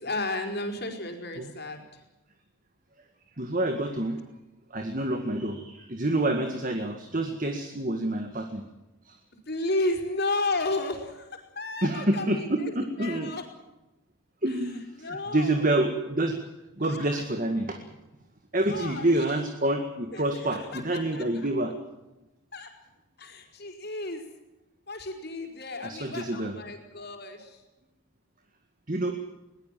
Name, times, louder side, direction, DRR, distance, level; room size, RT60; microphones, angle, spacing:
voice 1, 0.0-2.0 9.5-12.7 13.0-13.4 14.5-14.7 15.0-15.7 16.8-17.2 18.7-19.1 20.1-20.2 20.5-20.8 21.1-21.5 22.5-22.7 23.2-24.3 24.9-27.6, left 2 dB, 50° left, 4 dB, 5.0 m, -33 dB
voice 2, 3.4-4.2 4.7-8.6 9.1-9.2 11.8-13.3 14.4-16.4 16.8-17.8 18.5-21.7 25.8-26.6 28.9-29.2, right 1 dB, 40° right, 6 dB, 1.9 m, -27 dB
22.5 x 20.0 x 7.6 m, 1.0 s
head